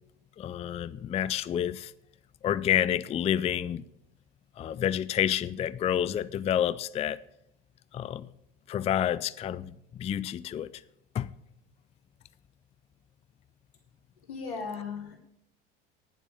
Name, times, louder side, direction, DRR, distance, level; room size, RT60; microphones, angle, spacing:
voice 1, 0.4-1.9 2.4-3.8 4.6-7.2 7.9-8.3 8.7-10.8 11.1-11.3, left 10 dB, 20° left, 0.3 m, -29 dB
voice 2, 14.2-15.2, left 5 dB, 85° left, 3.1 m, -37 dB
10.0 x 7.2 x 8.2 m
hypercardioid pair, 85°, 29 cm